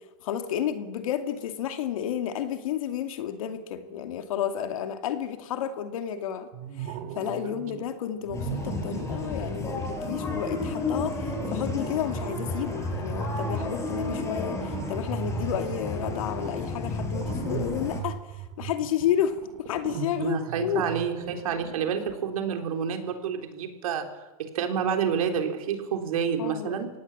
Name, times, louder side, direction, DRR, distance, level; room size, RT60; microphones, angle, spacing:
voice 1, 0.2-6.5 6.8-18.2 18.6-20.8 26.4-26.8, left 10 dB, 70° left, 6 dB, 2.5 m, -31 dB
sound 1, 6.5-7.9 8.3-22.2, right 8 dB, 50° right, 2.7 m, -39 dB
sound 2, 8.3-18.0, left 3 dB, 15° left, 5.3 m, -32 dB
voice 2, 20.2-26.9, right 7 dB, 75° right, 4 dB, 3.9 m, -29 dB
25.0 x 18.0 x 7.4 m, 1.1 s
supercardioid pair, 140°, 18 cm